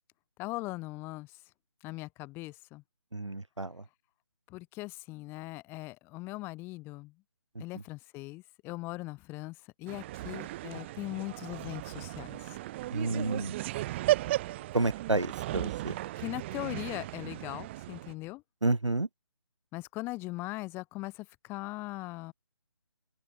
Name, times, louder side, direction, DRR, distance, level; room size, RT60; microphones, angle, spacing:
voice 1, 0.4-1.3 1.8-2.8 4.5-7.1 7.6-12.6 16.2-18.4 19.7-22.3, left 21 dB, 15° left, 4.5 m, -40 dB
voice 2, 3.1-3.7 12.9-13.5 14.7-15.9 18.6-19.1, right 2 dB, 90° right, 3.5 m, -30 dB
sound 1, 9.9-18.1, right 16 dB, 25° right, 4.1 m, -35 dB
open air
figure-of-eight pair, 155°, 15 cm